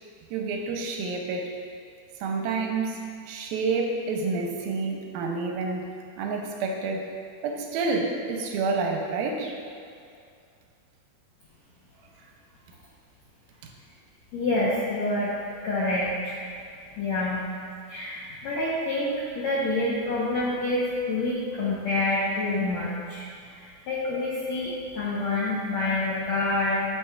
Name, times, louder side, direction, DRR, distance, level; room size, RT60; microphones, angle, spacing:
voice 1, 0.3-1.5 2.2-3.0 3.3-5.9 6.2-7.1 7.4-9.6, right 4 dB, 80° right, 1 dB, 2.4 m, -28 dB
voice 2, 14.3-15.3 15.6-16.4 17.0-17.4 17.9-23.2 23.5-26.8, left 2 dB, 80° left, -7 dB, 1.6 m, -27 dB
9.5 x 7.5 x 2.3 m, 2.3 s
omnidirectional pair, 4.3 m